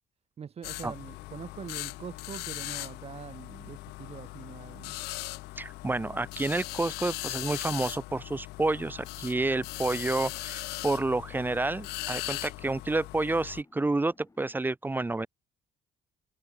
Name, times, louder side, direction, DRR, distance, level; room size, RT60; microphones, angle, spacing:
voice 1, 0.4-5.0, right 7 dB, 40° right, 1.3 m, -43 dB
sound 1, 0.6-13.6, left 22 dB, 85° left, 0.9 m, -39 dB
sound 2, 1.0-14.7, left 3 dB, 20° left, 4.1 m, -62 dB
voice 2, 5.6-15.3, right 2 dB, 10° right, 0.5 m, -29 dB
cardioid pair, 90°, 16 cm